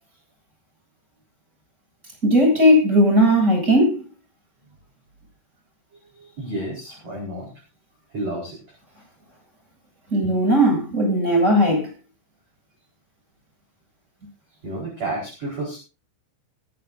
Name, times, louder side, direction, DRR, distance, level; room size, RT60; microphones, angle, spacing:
voice 1, 2.2-4.1 10.1-11.9, equal, 15° right, 7.8 m, -17 dB
voice 2, 6.1-7.5 8.1-8.6 14.6-15.8, right 1 dB, 35° right, 5.4 m, -31 dB
21.5 x 11.5 x 2.6 m
omnidirectional pair, 5.8 m